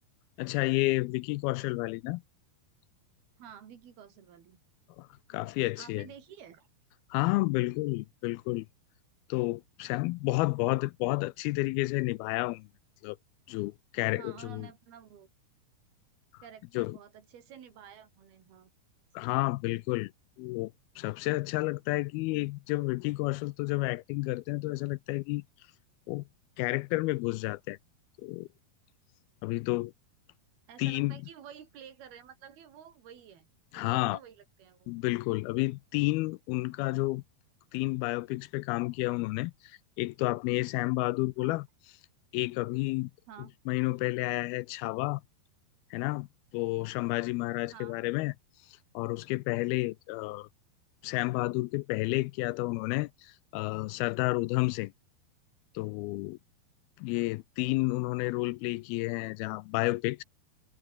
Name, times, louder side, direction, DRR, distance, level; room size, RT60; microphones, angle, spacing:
voice 1, 0.4-2.2 5.0-6.1 7.1-8.7 9.3-12.7 13.0-13.2 13.5-14.7 16.8-17.0 19.2-20.1 20.4-20.7 21.0-25.4 26.1-26.2 26.6-27.8 28.2-28.5 29.4-29.9 30.8-31.2 33.7-34.2 34.9-37.2 37.7-41.7 42.3-43.1 43.7-45.2 45.9-46.3 46.5-48.3 48.9-50.5 51.0-54.9 55.8-56.4 57.0-60.2, left 21 dB, 80° left, 2.3 m, -30 dB
voice 2, 3.4-4.6 5.8-6.7 14.2-15.3 16.4-18.7 30.7-33.5 33.7-34.9 41.4-41.6 43.3-43.6 47.7-48.0, right 8 dB, 70° right, 4.7 m, -51 dB
omnidirectional pair, 4.6 m